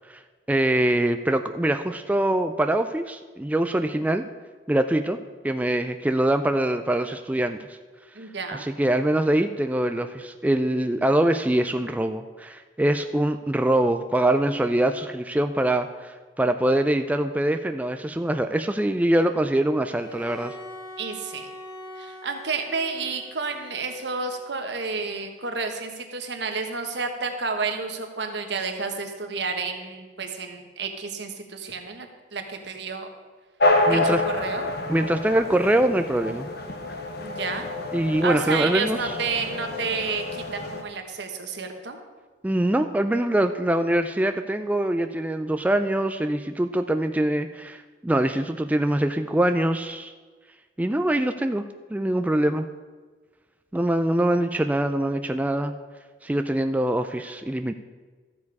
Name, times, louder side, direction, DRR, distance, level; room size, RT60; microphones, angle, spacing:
voice 1, 0.5-4.3 4.7-5.2 5.4-7.6 8.5-20.5 33.9-34.2 34.9-36.5 37.9-39.1 42.4-50.1 50.8-52.7 53.7-55.7 56.2-57.7, right 1 dB, 10° right, 8 dB, 0.3 m, -23 dB
voice 2, 8.1-8.7 21.0-21.5 22.0-33.1 33.9-34.7 37.2-37.7 38.2-42.0, right 4 dB, 65° right, 5 dB, 1.2 m, -30 dB
Bowed string instrument, 19.9-24.9, left 1 dB, 20° left, 2.5 m, -43 dB
sound 1, 33.6-40.8, left 2 dB, 55° left, 1.0 m, -28 dB
13.0 x 7.1 x 4.7 m, 1.4 s
head